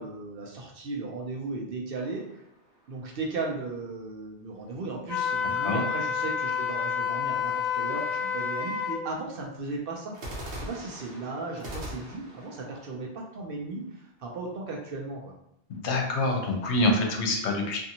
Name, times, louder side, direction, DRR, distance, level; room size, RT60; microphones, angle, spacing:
voice 1, 0.0-2.2 2.9-10.2 10.5-15.3, right 3 dB, 60° right, 0 dB, 0.7 m, -36 dB
sound 1, 1.9-3.4 10.1-14.1, equal, 80° right, 1.1 m, -42 dB
Wind instrument woodwind instrument, 5.1-9.0, left 7 dB, 50° left, 0.7 m, -29 dB
voice 2, 15.7-17.8, left 2 dB, 80° left, 1 dB, 0.9 m, -26 dB
2.6 x 2.5 x 2.7 m, 0.76 s
omnidirectional pair, 1.1 m